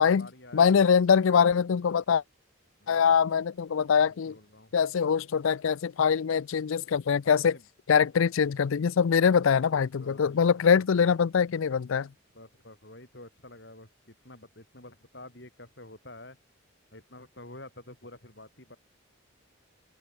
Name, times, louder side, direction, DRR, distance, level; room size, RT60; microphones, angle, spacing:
voice 1, 0.0-0.9 2.8-3.1 4.1-4.8 7.3-7.7 10.0-10.8 12.3-16.4 16.9-18.8, left 2 dB, 55° left, 6.1 m, -49 dB
voice 2, 0.5-2.2 2.9-4.3 4.7-7.6 7.9-12.1, left 6 dB, 75° left, 0.4 m, -23 dB
head